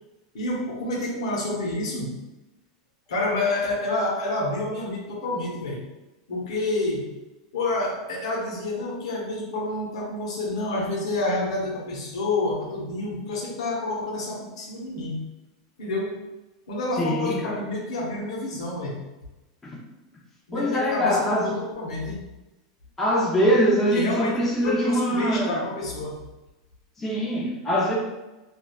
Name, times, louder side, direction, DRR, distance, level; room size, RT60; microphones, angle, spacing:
voice 1, 0.3-2.2 3.1-5.9 6.3-7.2 7.5-15.3 15.8-16.3 16.7-19.1 20.5-22.2 23.9-26.2, left 2 dB, 85° left, -2 dB, 0.9 m, -28 dB
voice 2, 17.0-17.6 19.6-19.8 20.5-21.5 23.0-25.6 27.0-27.9, equal, 10° left, -4 dB, 0.4 m, -23 dB
3.2 x 2.4 x 2.2 m, 1.0 s
supercardioid pair, 170°, 3 cm